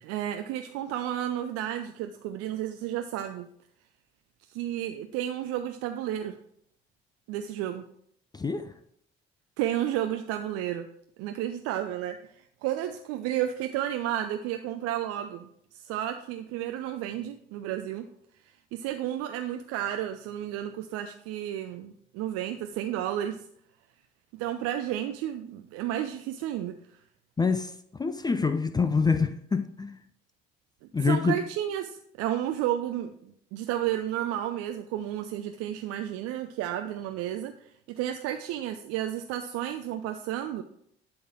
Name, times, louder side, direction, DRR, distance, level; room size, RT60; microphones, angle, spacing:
voice 1, 0.0-3.5 4.5-6.4 7.3-7.8 9.6-10.9 11.2-15.5 15.7-18.1 18.4-23.4 24.4-26.7 31.0-37.5 38.0-40.6, right 11 dB, 55° right, 0.5 m, -32 dB
voice 2, 8.3-8.7 27.4-27.7 28.0-30.0 30.9-31.4, left 4 dB, 15° left, 0.4 m, -26 dB
11.5 x 3.9 x 4.4 m
figure-of-eight pair, 45°, 31 cm